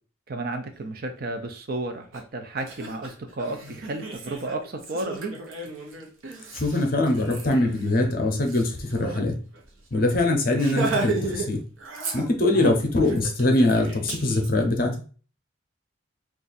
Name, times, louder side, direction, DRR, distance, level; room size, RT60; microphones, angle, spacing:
voice 1, 0.3-2.1 2.3-5.3 12.5-12.8, right 2 dB, 45° right, 6 dB, 0.5 m, -32 dB
Laughter, 2.1-2.2 2.6-9.2 9.5-9.7 9.9-10.1 10.5-11.5 11.8-12.6 13.0-14.5, right 3 dB, 70° right, 0.8 m, -34 dB
voice 2, 6.5-9.3 9.9-11.6 12.1-15.0, left 2 dB, 45° left, 3 dB, 0.6 m, -22 dB
2.6 x 2.4 x 4.0 m, 0.39 s
head